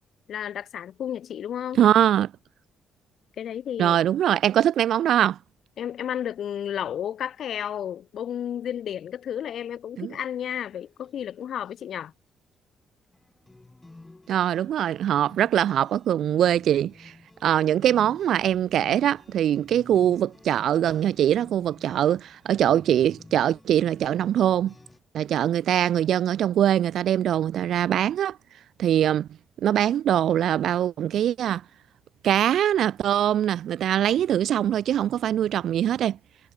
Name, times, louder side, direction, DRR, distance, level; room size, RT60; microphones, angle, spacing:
voice 1, 0.3-1.8 3.4-4.0 5.8-12.1, left 9 dB, 65° left, 0.9 m, -32 dB
voice 2, 1.8-2.3 3.8-5.4 10.0-10.1 14.3-17.1 17.4-24.7 25.1-28.4 28.8-29.3 29.6-31.6 32.2-36.2, right 10 dB, 70° right, 0.7 m, -22 dB
sound 1, 10.4-11.0 11.3-11.4 11.8-12.0 13.1-25.0, left 2 dB, 15° left, 7.8 m, -52 dB
cardioid pair, 90°, 0 cm